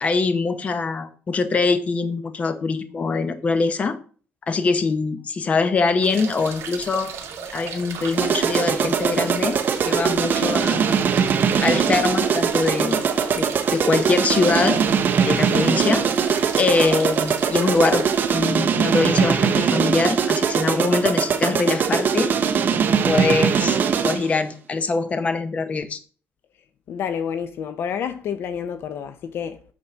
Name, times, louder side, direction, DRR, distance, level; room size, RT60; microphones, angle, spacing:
voice 1, 0.0-4.0 4.5-7.1 7.5-9.6 9.9-11.0 11.6-13.0 13.3-13.4 13.7-14.8 15.2-16.1 16.6-18.1 18.3-22.3 23.1-23.8 24.0-26.0, left 4 dB, 30° left, 0.9 m, -23 dB
sound 1, 6.0-18.4, right 6 dB, 60° right, 2.0 m, -35 dB
sound 2, 8.2-24.4, right 7 dB, 40° right, 1.0 m, -21 dB
voice 2, 26.9-29.7, left 8 dB, 55° left, 0.7 m, -29 dB
8.7 x 4.2 x 6.2 m
cardioid pair, 160°, 5 cm